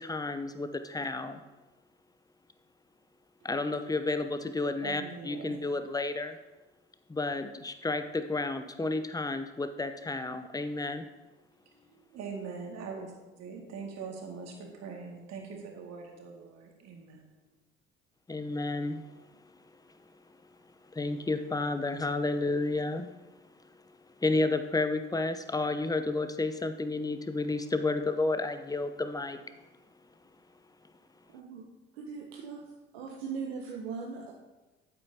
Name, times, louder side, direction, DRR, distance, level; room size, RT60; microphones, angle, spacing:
voice 1, 0.0-1.4 3.4-6.4 7.1-11.0 18.3-19.0 20.9-23.1 24.2-29.4, left 3 dB, 10° left, 9 dB, 0.8 m, -31 dB
voice 2, 4.8-5.6 12.1-13.1 13.4-17.3, right 5 dB, 55° right, 1 dB, 2.2 m, -42 dB
voice 3, 31.3-31.7 31.9-34.3, right 5 dB, 75° right, -2 dB, 1.0 m, -39 dB
12.5 x 8.5 x 2.9 m, 1.2 s
hypercardioid pair, 50°, 30 cm